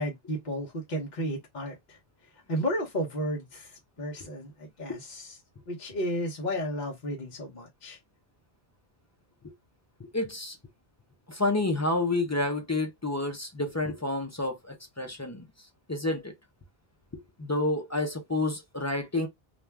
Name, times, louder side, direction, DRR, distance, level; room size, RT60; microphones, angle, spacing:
voice 1, 0.0-2.0 2.5-5.4 5.7-8.0, equal, 50° left, 0.8 m, -33 dB
voice 2, 10.0-10.6 11.3-15.5 15.9-16.3 17.1-19.3, left 2 dB, 25° left, 0.3 m, -29 dB
2.4 x 2.2 x 3.2 m
omnidirectional pair, 1.0 m